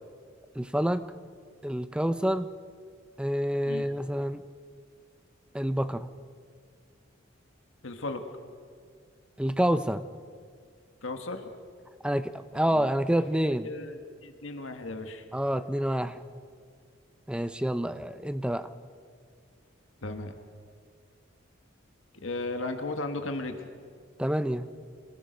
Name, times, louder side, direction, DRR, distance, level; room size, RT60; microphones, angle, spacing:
voice 1, 0.6-1.0 1.6-2.5 3.2-4.4 5.5-6.1 9.4-10.1 12.0-13.7 15.3-16.3 17.3-18.7 24.2-24.7, equal, 5° right, 11 dB, 0.5 m, -28 dB
voice 2, 7.8-8.2 11.0-11.5 12.7-12.8 13.6-15.3 20.0-20.4 22.2-23.7, left 2 dB, 75° left, 6 dB, 1.5 m, -35 dB
26.5 x 19.0 x 5.2 m, 2.1 s
head